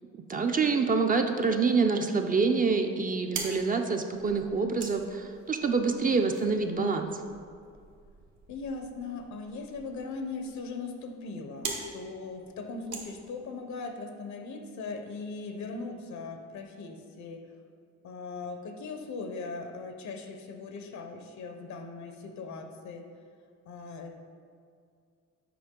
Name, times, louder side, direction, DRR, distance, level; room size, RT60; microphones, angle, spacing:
voice 1, 0.3-7.1, right 4 dB, 30° right, 5 dB, 0.4 m, -26 dB
sound 1, 3.0-13.9, right 4 dB, 75° right, 1.1 m, -44 dB
voice 2, 8.5-17.5 18.0-23.1 23.7-24.2, left 3 dB, 70° left, 5 dB, 0.8 m, -39 dB
6.9 x 4.7 x 3.7 m, 2.2 s
cardioid pair, 90°, 30 cm